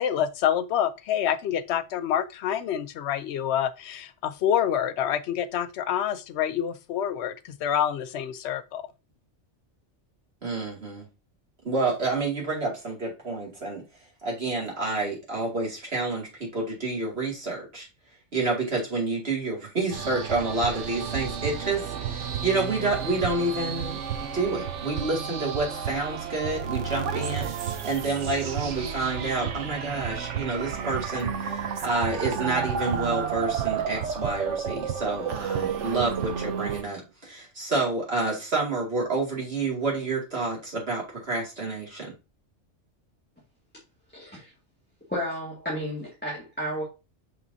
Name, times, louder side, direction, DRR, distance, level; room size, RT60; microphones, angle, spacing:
voice 1, 0.0-8.8, left 9 dB, 70° left, 0.8 m, -27 dB
voice 2, 10.4-11.1 11.6-13.8 14.2-17.9 18.3-42.1, right 3 dB, 55° right, 2.6 m, -29 dB
sound 1, 19.9-36.8, right 7 dB, 75° right, 1.0 m, -31 dB
voice 3, 44.1-44.5 45.1-46.8, equal, 10° left, 1.8 m, -32 dB
6.4 x 5.5 x 2.7 m
omnidirectional pair, 1.2 m